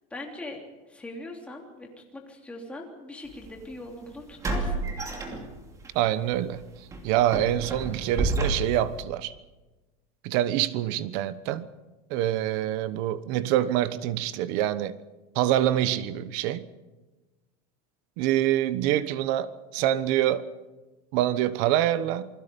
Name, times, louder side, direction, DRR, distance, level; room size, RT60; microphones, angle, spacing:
voice 1, 0.1-0.6 0.9-4.9, left 2 dB, 5° left, 3.2 m, -41 dB
sound 1, 3.3-3.5 4.4-5.9 6.3-6.5 6.9-9.0, right 2 dB, 15° right, 2.6 m, -30 dB
voice 2, 5.9-6.6 7.0-9.3 10.2-11.7 12.1-15.0 15.3-16.7 18.2-20.4 21.1-22.3, right 12 dB, 50° right, 1.1 m, -25 dB
28.5 x 20.5 x 5.4 m
cardioid pair, 180°, 19 cm